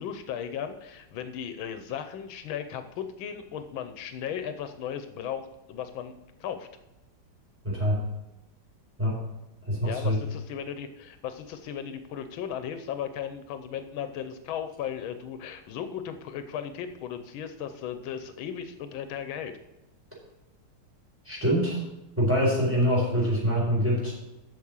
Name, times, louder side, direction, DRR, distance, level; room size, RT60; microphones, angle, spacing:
voice 1, 0.0-6.1 6.4-6.7 9.8-19.5, left 8 dB, 80° left, 9 dB, 1.5 m, -36 dB
voice 2, 7.6-8.0 9.0-9.2 9.6-10.2 21.2-21.8 22.2-24.1, equal, 5° right, -5 dB, 4.3 m, -25 dB
8.5 x 6.6 x 7.2 m, 0.95 s
omnidirectional pair, 2.2 m